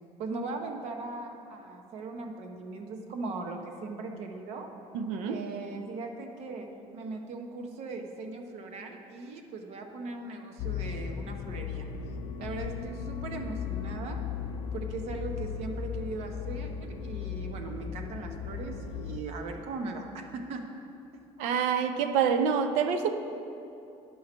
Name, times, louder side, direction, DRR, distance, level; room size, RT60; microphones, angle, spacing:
voice 1, 0.2-4.7 5.3-6.7 6.9-11.9 12.4-14.2 14.7-20.6, right 3 dB, 60° right, 4 dB, 0.9 m, -39 dB
voice 2, 4.9-5.4 21.4-23.2, right 7 dB, 85° right, 8 dB, 0.6 m, -27 dB
sound 1, 10.6-19.2, left 7 dB, 65° left, 0.5 m, -36 dB
10.5 x 5.6 x 4.4 m, 2.8 s
cardioid pair, 135°, 12 cm